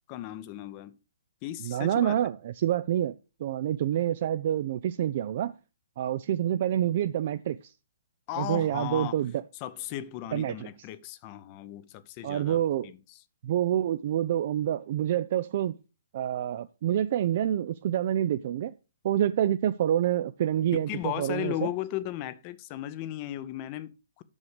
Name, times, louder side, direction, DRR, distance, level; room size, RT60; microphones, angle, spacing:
voice 1, 0.1-0.9 1.4-2.2 8.3-9.2 9.6-13.0 20.9-24.2, left 13 dB, 30° left, 0.8 m, -36 dB
voice 2, 1.6-3.1 3.4-5.5 6.0-7.7 8.4-9.4 10.3-10.7 12.2-12.9 13.4-15.8 16.1-18.7 19.0-21.7, right 11 dB, 45° right, 0.4 m, -27 dB
8.6 x 6.4 x 4.9 m
figure-of-eight pair, 125°, 0 cm